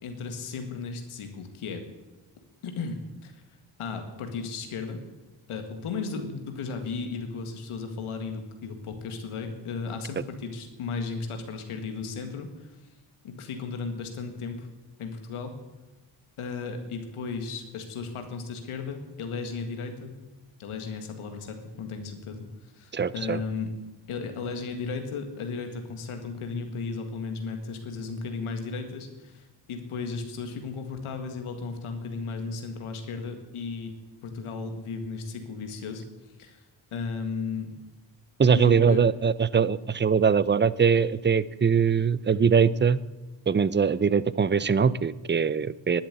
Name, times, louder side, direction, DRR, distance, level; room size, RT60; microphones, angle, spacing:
voice 1, 0.0-1.8 2.6-3.4 3.8-5.0 5.5-12.8 13.2-14.7 15.0-15.5 16.4-20.2 20.6-22.5 22.7-23.7 24.1-33.9 34.2-36.0 36.4-36.6 36.9-37.7 38.5-39.0, left 4 dB, 85° left, 6 dB, 1.9 m, -35 dB
voice 2, 22.9-23.4 38.4-43.0 43.5-46.0, right 6 dB, 20° right, 19 dB, 0.6 m, -22 dB
11.5 x 10.5 x 8.2 m, 1.1 s
supercardioid pair, 45°, 49 cm